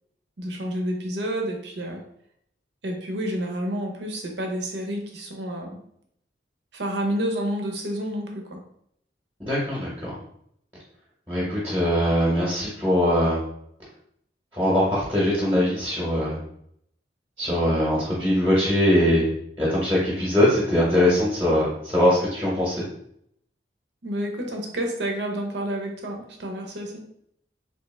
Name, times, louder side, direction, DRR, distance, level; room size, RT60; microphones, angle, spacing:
voice 1, 0.4-2.0 2.8-5.8 6.7-8.6 24.0-27.0, right 1 dB, 65° right, 2 dB, 0.7 m, -29 dB
voice 2, 9.4-10.2 11.3-13.4 14.5-16.4 17.4-19.3 19.6-22.9, left 1 dB, 15° right, -6 dB, 0.9 m, -22 dB
3.3 x 3.0 x 3.2 m, 0.71 s
head